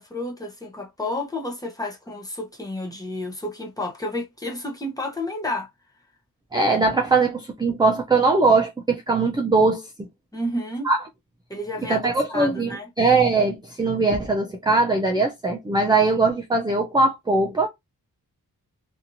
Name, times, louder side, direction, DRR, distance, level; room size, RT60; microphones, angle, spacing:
voice 1, 0.0-5.7 10.3-10.9 11.5-12.0 12.3-12.9, left 1 dB, 10° left, 0.8 m, -31 dB
voice 2, 6.5-9.9 10.8-11.0 11.9-17.7, right 3 dB, 10° right, 0.4 m, -20 dB
2.9 x 2.5 x 2.6 m
wide cardioid pair, 120°, 35 cm